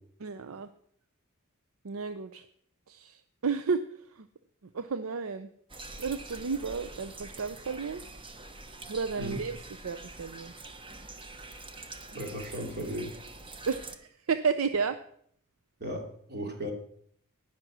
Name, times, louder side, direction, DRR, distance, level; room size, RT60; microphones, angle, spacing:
voice 1, 0.2-0.7 1.8-2.5 2.9-4.3 4.7-5.5 6.0-8.0 8.9-10.5 13.7-15.0, right 5 dB, 75° right, 11 dB, 0.6 m, -32 dB
sound 1, 5.7-14.0, right 2 dB, 25° right, 0.9 m, -45 dB
voice 2, 12.1-13.2 15.8-16.7, equal, 50° right, 3 dB, 2.7 m, -36 dB
18.0 x 6.1 x 6.1 m, 0.64 s
head